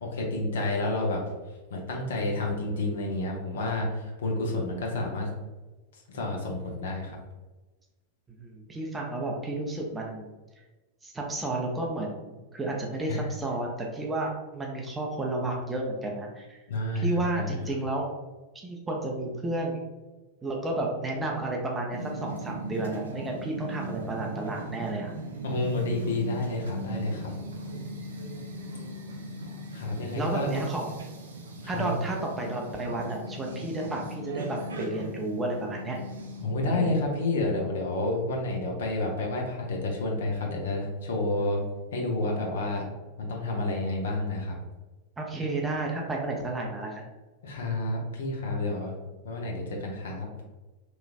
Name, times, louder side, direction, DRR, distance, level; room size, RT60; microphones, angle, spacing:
voice 1, 0.0-1.2 1.7-5.3 6.1-7.2 13.1-13.2 16.7-17.6 25.4-27.3 29.7-30.5 31.6-31.9 36.4-41.6 41.9-42.8 43.2-44.6 47.4-48.9 49.2-50.3, left 2 dB, 60° left, 0 dB, 0.7 m, -29 dB
voice 2, 8.4-10.3 11.0-16.6 16.9-18.1 18.5-19.8 20.4-25.1 30.2-30.9 31.7-36.0 36.6-37.0 45.2-47.0, right 2 dB, 15° right, -1 dB, 0.5 m, -32 dB
sound 1, 21.9-36.6, right 1 dB, 65° right, 0.4 m, -38 dB
3.1 x 2.4 x 2.4 m, 1.2 s
figure-of-eight pair, 90°, 0 cm